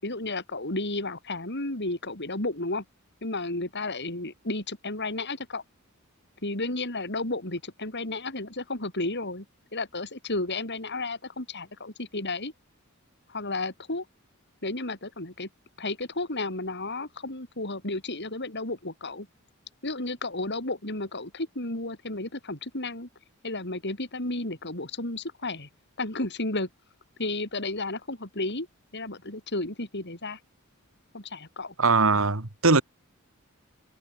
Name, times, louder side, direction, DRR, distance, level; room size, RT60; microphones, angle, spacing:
voice 1, 0.0-2.8 3.2-5.6 6.4-9.4 9.7-12.5 13.3-14.0 14.6-15.5 15.8-19.3 19.8-23.1 23.4-25.7 26.0-26.7 27.2-28.7 28.9-30.4 31.1-31.7, left 2 dB, 55° left, 6.8 m, -32 dB
voice 2, 31.8-32.8, right 3 dB, 70° right, 2.3 m, -21 dB
head